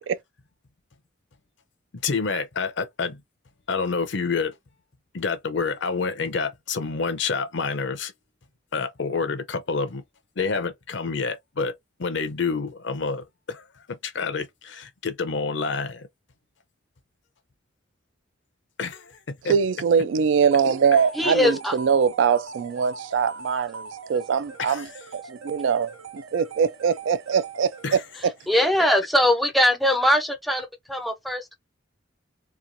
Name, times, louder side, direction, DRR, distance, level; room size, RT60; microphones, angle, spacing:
voice 1, 1.9-3.2 3.7-4.5 5.1-8.1 8.7-10.0 10.4-11.7 12.0-16.1 18.8-19.5 24.6-24.9 27.8-28.0, left 4 dB, 60° left, 0.6 m, -28 dB
voice 2, 19.5-24.9 25.3-28.3, right 6 dB, 65° right, 0.3 m, -23 dB
sound 1, 20.5-28.3, right 4 dB, 85° right, 0.8 m, -41 dB
voice 3, 21.1-21.8 28.5-31.5, left 1 dB, ahead, 0.4 m, -21 dB
3.0 x 2.2 x 2.6 m
head